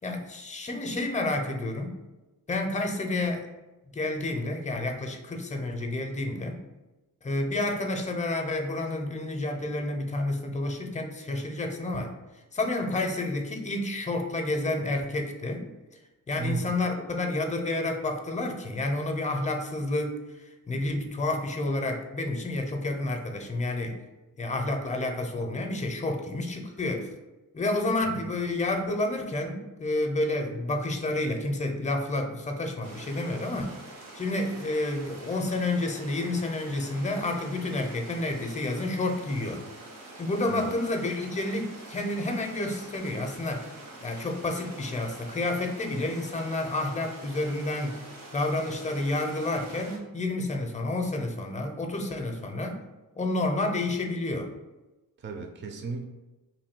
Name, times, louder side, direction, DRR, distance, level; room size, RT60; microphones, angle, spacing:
voice 1, 0.0-2.0 2.5-3.5 3.9-6.6 7.2-12.1 12.5-15.7 16.3-24.0 24.4-27.1 27.5-33.7 34.1-39.6 40.2-43.7 44.0-48.0 48.3-52.8 53.2-54.5, left 2 dB, 20° left, 4 dB, 0.5 m, -30 dB
voice 2, 16.4-16.7 28.0-28.3 40.5-40.7 55.2-56.0, right 4 dB, 35° right, 3 dB, 0.4 m, -35 dB
sound 1, 32.8-50.0, right 2 dB, 75° right, 1.0 m, -46 dB
3.1 x 2.6 x 4.3 m, 1.1 s
wide cardioid pair, 120°, 34 cm